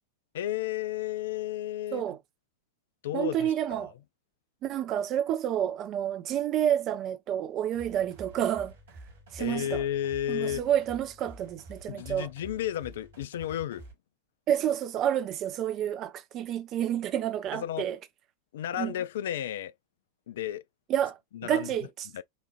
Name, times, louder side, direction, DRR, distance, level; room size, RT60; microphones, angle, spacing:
voice 1, 0.3-2.0 3.0-3.9 9.4-10.6 11.9-13.9 17.5-17.9 18.5-19.7 20.3-20.6 21.3-21.7 22.1-22.2, left 11 dB, 60° left, 0.3 m, -33 dB
voice 2, 3.1-3.9 4.6-8.7 9.3-9.8 10.3-12.3 14.5-18.0 18.8-18.9 20.9-22.1, right 10 dB, 35° right, 0.5 m, -29 dB
sound 1, 7.7-13.9, right 2 dB, 65° right, 1.9 m, -49 dB
5.2 x 2.4 x 2.4 m
figure-of-eight pair, 90°, 0 cm